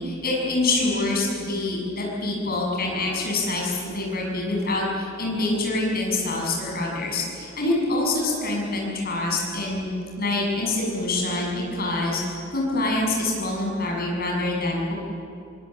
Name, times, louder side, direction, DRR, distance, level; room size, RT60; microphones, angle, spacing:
voice 1, 0.0-9.9 10.2-12.2 12.5-14.9, left 2 dB, 45° left, -2 dB, 6.8 m, -25 dB
25.0 x 20.5 x 7.7 m, 2.6 s
head